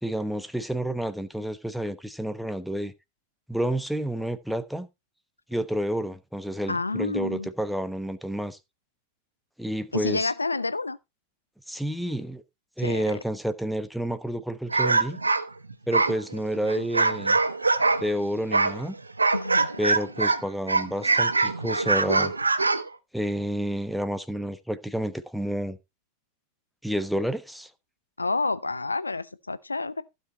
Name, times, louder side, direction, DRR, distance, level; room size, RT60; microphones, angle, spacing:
voice 1, 0.0-2.9 3.5-4.9 5.5-8.6 9.6-10.2 11.7-12.4 12.8-15.2 15.9-17.4 18.0-18.9 19.8-22.3 23.1-25.8 26.8-27.7, equal, ahead, 0.9 m, -30 dB
voice 2, 6.7-7.5 9.9-11.0 12.8-13.1 19.3-19.7 28.2-30.0, left 3 dB, 80° left, 0.7 m, -29 dB
sound 1, 14.7-18.1 18.5-20.4 20.7-22.9, right 3 dB, 80° right, 0.9 m, -23 dB
15.0 x 5.3 x 4.0 m
figure-of-eight pair, 90°, 0 cm